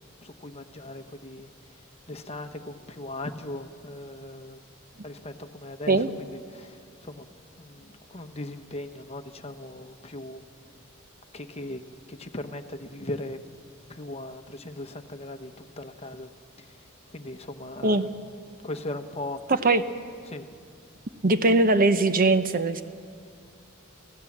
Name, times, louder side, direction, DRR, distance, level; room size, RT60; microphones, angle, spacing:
voice 1, 0.2-4.7 5.0-7.3 7.6-10.7 11.3-11.8 12.1-13.4 13.9-16.3 16.6-18.1 18.6-19.4 20.3-20.5, left 1 dB, 30° left, 8 dB, 1.0 m, -39 dB
voice 2, 21.2-22.8, right 2 dB, 45° right, 11 dB, 0.7 m, -20 dB
28.5 x 15.5 x 7.3 m, 2.2 s
head